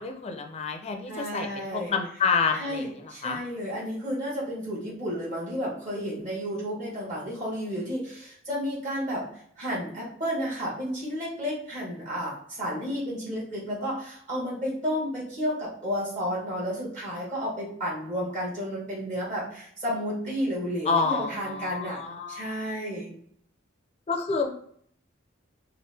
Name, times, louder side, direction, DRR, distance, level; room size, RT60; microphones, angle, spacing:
voice 1, 0.0-3.4 20.9-22.6 24.1-24.5, left 5 dB, 30° left, 4 dB, 0.4 m, -28 dB
voice 2, 1.1-1.9 2.5-22.0 22.3-23.1, equal, 40° right, -6 dB, 1.1 m, -32 dB
3.1 x 2.4 x 3.2 m, 0.64 s
head